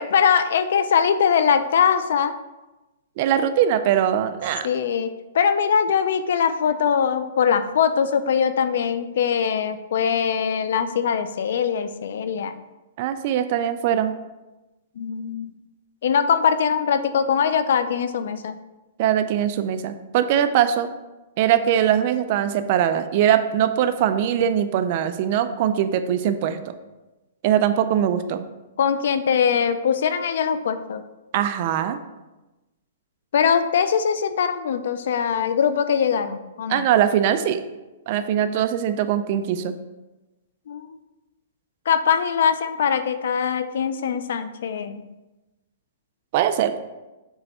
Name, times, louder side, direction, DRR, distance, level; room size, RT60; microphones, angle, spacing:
voice 1, 0.0-2.3 4.6-12.6 15.0-15.5 16.0-18.6 28.8-31.0 33.3-36.8 40.7-41.0 41.9-45.0, left 7 dB, 70° left, 11 dB, 0.4 m, -22 dB
voice 2, 3.2-4.7 13.0-14.1 19.0-20.9 21.4-26.6 27.4-28.4 31.3-32.0 36.7-37.6 38.1-39.8 46.3-46.8, right 10 dB, 40° right, 11 dB, 0.4 m, -21 dB
6.9 x 3.3 x 4.2 m, 1.1 s
hypercardioid pair, 160°, 0 cm